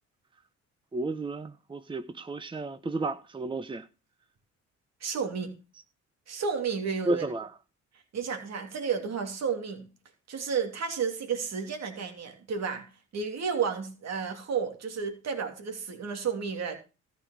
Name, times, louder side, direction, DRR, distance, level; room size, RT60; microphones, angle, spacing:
voice 1, 0.9-3.9 7.0-7.5, right 2 dB, 15° right, 0.8 m, -32 dB
voice 2, 5.0-5.5 6.3-7.2 8.1-9.9 10.3-12.9 13.1-16.7, right 6 dB, 60° right, 3.0 m, -32 dB
13.5 x 5.3 x 7.2 m
cardioid pair, 90°, 30 cm